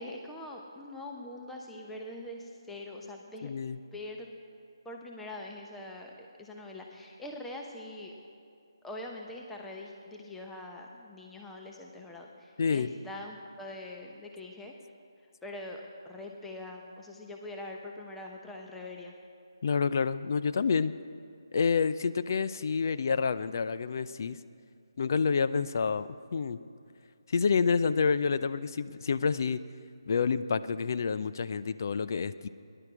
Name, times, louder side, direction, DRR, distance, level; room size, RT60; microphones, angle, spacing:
voice 1, 0.0-3.5 3.9-4.4 4.8-8.1 8.8-14.7 15.4-19.1, left 1 dB, 5° left, 0 dB, 0.8 m, -43 dB
voice 2, 3.4-3.8 12.6-12.9 19.6-21.0 21.5-24.4 25.0-26.6 27.3-29.6 30.1-32.5, left 5 dB, 45° left, 13 dB, 0.5 m, -28 dB
19.0 x 11.0 x 4.8 m, 2.4 s
figure-of-eight pair, 150°, 3 cm